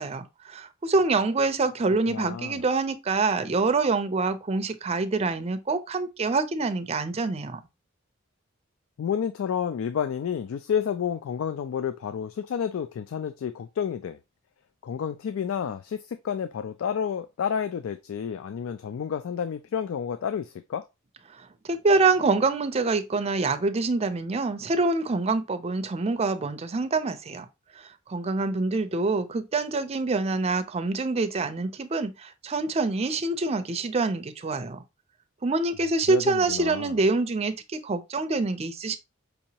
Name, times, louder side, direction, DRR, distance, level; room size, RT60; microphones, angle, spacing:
voice 1, 0.0-7.6 21.4-27.5 28.1-34.8 35.4-39.0, right 3 dB, 30° right, 0.5 m, -26 dB
voice 2, 2.1-2.6 9.0-14.2 14.8-20.8 36.1-36.9, left 7 dB, 75° left, 0.3 m, -30 dB
5.3 x 2.8 x 2.8 m
head